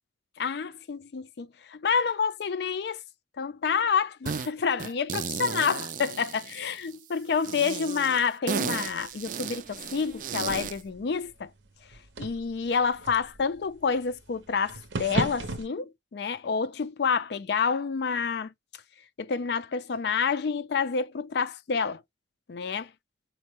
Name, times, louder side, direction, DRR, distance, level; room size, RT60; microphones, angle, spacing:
voice 1, 0.4-3.0 3.4-11.5 11.9-18.5 19.2-22.0 22.5-22.9, left 5 dB, 60° left, 0.4 m, -28 dB
sound 1, 4.3-4.5 4.8-6.9 7.4-10.8, right 6 dB, 45° right, 0.3 m, -34 dB
sound 2, 8.6-15.7, right 2 dB, 80° right, 0.7 m, -38 dB
4.3 x 2.1 x 2.9 m
head